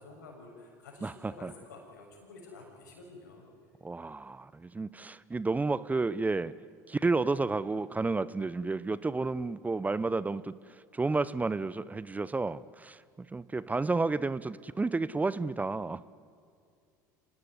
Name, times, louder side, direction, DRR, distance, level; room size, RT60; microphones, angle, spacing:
voice 1, 0.0-3.7, left 3 dB, 85° left, 1 dB, 6.9 m, -50 dB
voice 2, 1.0-1.5 3.8-6.5 6.9-13.0 13.3-16.1, right 3 dB, 15° right, 18 dB, 0.7 m, -31 dB
26.5 x 17.5 x 9.8 m, 2.4 s
hypercardioid pair, 75°, 10 cm